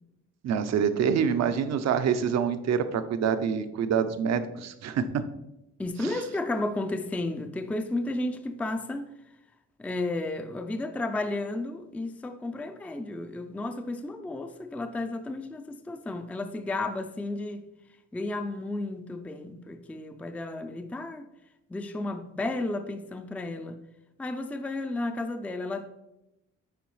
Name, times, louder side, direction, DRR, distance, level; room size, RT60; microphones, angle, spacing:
voice 1, 0.4-5.2 6.0-6.2, right 7 dB, 60° right, 0.6 m, -26 dB
voice 2, 5.8-9.1 9.8-17.7 18.1-21.3 21.7-23.8 24.2-25.9, left 2 dB, 5° left, 0.4 m, -33 dB
9.2 x 3.8 x 3.1 m
cardioid pair, 90°, 30 cm